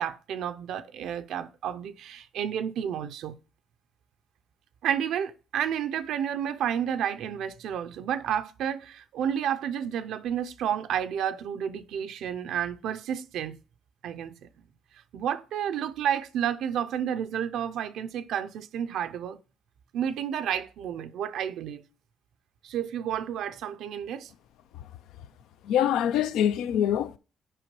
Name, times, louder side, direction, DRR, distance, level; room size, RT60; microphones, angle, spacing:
voice 1, 0.0-3.4 4.8-13.6 14.0-14.5 15.1-19.4 19.9-21.8 22.6-24.3, right 9 dB, 80° right, 0.4 m, -31 dB
voice 2, 25.6-27.2, left 10 dB, 90° left, 0.3 m, -24 dB
9.9 x 5.1 x 3.0 m
cardioid pair, 90°, 0 cm